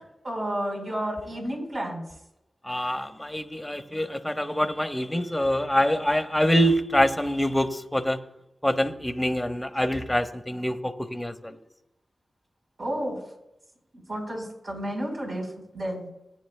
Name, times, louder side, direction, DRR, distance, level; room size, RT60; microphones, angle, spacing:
voice 1, 0.2-2.0 12.8-13.2 13.9-16.1, right 1 dB, 55° right, -1 dB, 4.5 m, -31 dB
voice 2, 2.7-8.2 8.6-11.6, equal, 10° left, 7 dB, 1.1 m, -25 dB
18.5 x 9.3 x 2.3 m, 0.87 s
cardioid pair, 45°, 0 cm